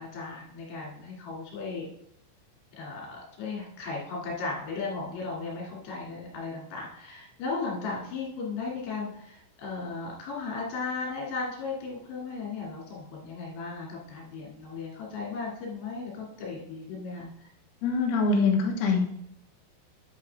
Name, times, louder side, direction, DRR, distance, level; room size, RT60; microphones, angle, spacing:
voice 1, 0.0-1.9 2.8-17.5, left 4 dB, 60° left, -3 dB, 4.4 m, -36 dB
voice 2, 17.8-19.0, left 4 dB, 75° left, 0 dB, 2.4 m, -24 dB
9.6 x 8.3 x 3.5 m, 0.75 s
omnidirectional pair, 6.0 m